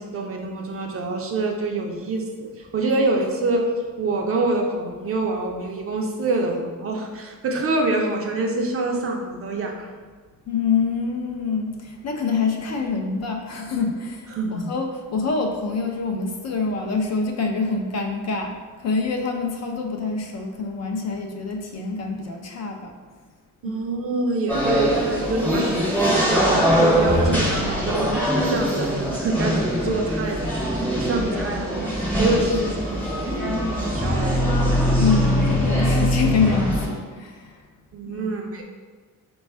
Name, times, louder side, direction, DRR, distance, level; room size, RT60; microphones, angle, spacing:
voice 1, 0.0-3.7 4.0-9.9 14.3-14.8 23.6-34.7 37.9-38.6, right 2 dB, 45° right, 2 dB, 0.4 m, -26 dB
voice 2, 10.5-23.0 23.6-23.8 35.0-37.6 38.1-38.3, left 4 dB, 50° left, 3 dB, 0.5 m, -26 dB
sound 1, 24.5-36.9, equal, 5° left, 0.6 m, -22 dB
4.1 x 2.3 x 4.3 m, 1.5 s
wide cardioid pair, 175°, 34 cm